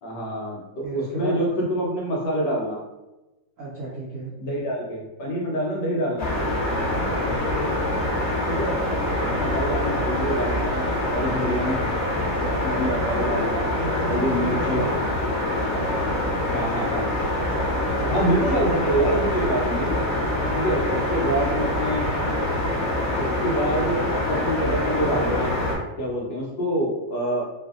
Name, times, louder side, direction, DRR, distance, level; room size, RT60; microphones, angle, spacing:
voice 1, 0.0-0.6 0.9-2.8 4.4-6.3 8.5-8.8 9.2-11.8 12.6-13.7 14.1-14.8 16.5-17.1 18.0-20.0 20.5-22.2 23.2-25.5 26.0-27.5, right 1 dB, 75° left, -2 dB, 1.4 m, -26 dB
voice 2, 0.8-1.4 3.6-4.3 7.0-7.4 12.9-15.1 15.6-16.3, equal, 70° right, -7 dB, 0.7 m, -34 dB
sound 1, 6.2-25.7, left 1 dB, 55° left, 0.8 m, -25 dB
3.2 x 2.5 x 2.4 m, 1.0 s
omnidirectional pair, 2.0 m